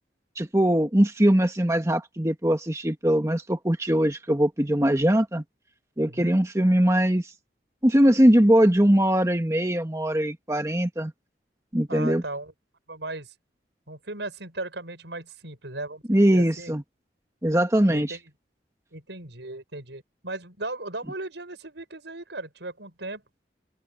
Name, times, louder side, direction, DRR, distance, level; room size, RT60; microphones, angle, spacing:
voice 1, 0.3-5.4 6.0-7.3 7.8-11.1 11.7-12.2 16.1-16.8 17.4-18.2, right 1 dB, 15° right, 1.5 m, -21 dB
voice 2, 6.0-6.4 11.9-12.5 12.9-13.3 13.9-16.0 16.3-16.7 17.9-18.2 18.9-23.2, right 2 dB, 85° right, 6.3 m, -37 dB
head